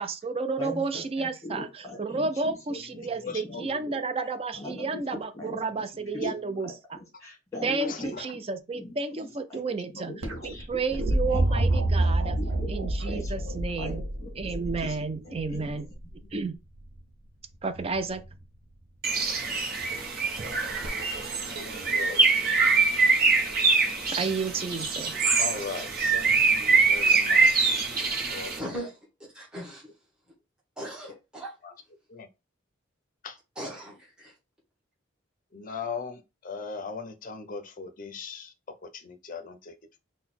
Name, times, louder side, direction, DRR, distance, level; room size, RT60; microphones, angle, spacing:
voice 1, 0.0-7.0 7.6-12.4 12.7-14.0 14.4-15.9 16.3-16.6 17.6-18.2 24.1-25.2, right 4 dB, 30° right, 0.4 m, -32 dB
voice 2, 0.6-2.6 2.9-3.9 4.5-5.6 6.1-6.3 6.6-6.7 7.2-8.4 8.7-8.9 9.5-9.6 10.0-11.8 12.3-13.3 13.8-14.5 14.8-15.0 15.2-15.8, left 2 dB, 15° left, 1.5 m, -40 dB
voice 3, 3.2-3.8 5.5-5.7 6.0-6.2 7.9-8.3 10.0-10.1 21.2-22.3 25.4-28.9 32.1-32.3 33.2-33.4 35.5-38.5 38.9-39.7, left 4 dB, 40° left, 0.5 m, -39 dB
sound 1, 10.2-16.1 17.8-18.3 20.8-20.9, right 1 dB, 90° right, 0.7 m, -28 dB
Bird, 19.0-28.6, right 4 dB, 45° right, 0.9 m, -24 dB
voice 4, 28.6-29.9 30.8-31.5 33.5-34.3, right 1 dB, 5° right, 1.0 m, -39 dB
3.9 x 2.1 x 4.1 m
head